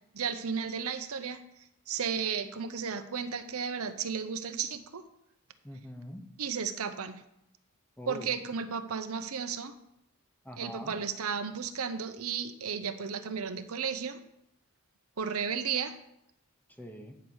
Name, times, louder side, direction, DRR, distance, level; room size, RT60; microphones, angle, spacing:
voice 1, 0.1-1.4 1.9-5.1 6.4-7.2 8.1-9.7 10.6-14.2 15.2-16.0, right 6 dB, 75° right, 10 dB, 0.7 m, -34 dB
voice 2, 5.6-6.3 8.0-8.5 10.4-11.0 16.7-17.2, equal, 10° left, 5 dB, 0.9 m, -44 dB
9.3 x 4.8 x 7.1 m, 0.80 s
head